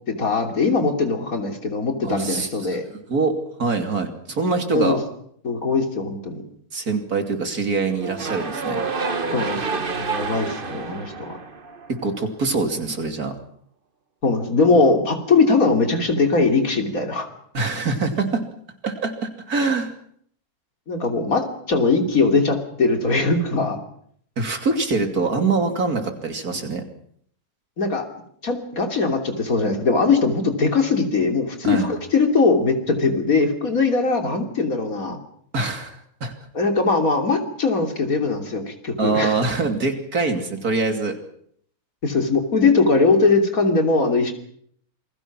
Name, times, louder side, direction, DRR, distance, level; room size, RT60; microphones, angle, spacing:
voice 1, 0.1-2.8 4.7-5.0 5.4-6.4 9.3-11.4 14.2-17.3 20.9-23.8 27.8-28.1 28.4-35.2 36.5-39.4 42.0-44.3, left 3 dB, 70° left, 5 dB, 3.5 m, -20 dB
voice 2, 2.0-2.8 3.1-3.3 3.6-5.0 6.7-8.8 11.9-13.3 17.5-18.4 18.8-19.9 24.4-26.8 31.6-31.9 35.5-36.3 39.0-41.2, right 4 dB, 80° right, 6 dB, 3.3 m, -24 dB
sound 1, 8.0-12.2, right 4 dB, 40° right, 1.5 m, -29 dB
27.5 x 21.5 x 6.1 m, 0.65 s
omnidirectional pair, 1.6 m